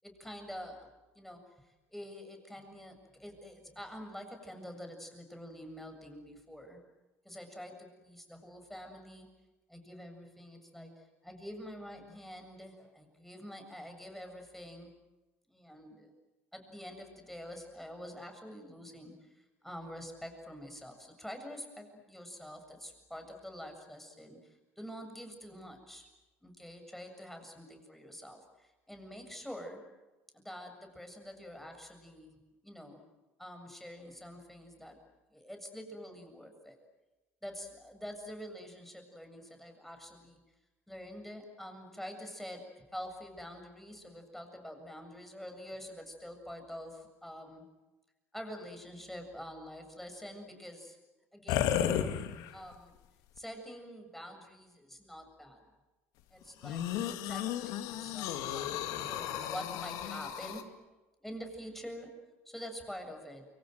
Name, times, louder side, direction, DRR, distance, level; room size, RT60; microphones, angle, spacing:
voice 1, 0.0-0.9 1.2-6.8 7.2-9.3 9.7-14.9 15.5-16.1 16.5-19.3 19.6-26.1 26.4-29.8 30.3-32.3 32.6-33.0 33.4-35.0 35.3-36.8 37.4-40.4 40.9-47.6 48.3-51.0 51.3-51.8 52.5-53.0 53.4-55.7 56.3-58.7 59.1-60.8 61.2-62.1 62.5-63.5, equal, 5° left, 5 dB, 7.4 m, -46 dB
sound 1, 51.5-52.7 53.4-53.5 56.6-60.6, left 10 dB, 65° left, 2.1 m, -34 dB
29.5 x 24.0 x 8.0 m, 1.1 s
hypercardioid pair, 65°, 7 cm